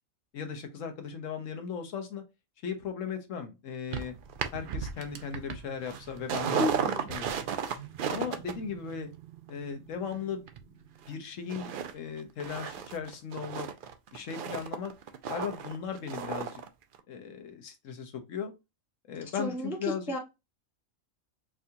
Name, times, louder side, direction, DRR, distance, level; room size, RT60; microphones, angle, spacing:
voice 1, 0.3-2.2 2.6-4.1 4.5-6.7 7.1-7.2 8.1-9.1 9.5-10.4 11.1-13.7 14.1-14.9 15.3-16.6 17.1-18.5 19.1-20.1, left 7 dB, 75° left, 1.1 m, -37 dB
sound 1, 3.9-11.1 11.5-11.9 12.2-16.7 16.9-17.0, right 7 dB, 65° right, 0.5 m, -35 dB
voice 2, 6.6-7.1 19.3-20.2, left 1 dB, ahead, 0.5 m, -33 dB
4.7 x 2.3 x 2.7 m
omnidirectional pair, 1.4 m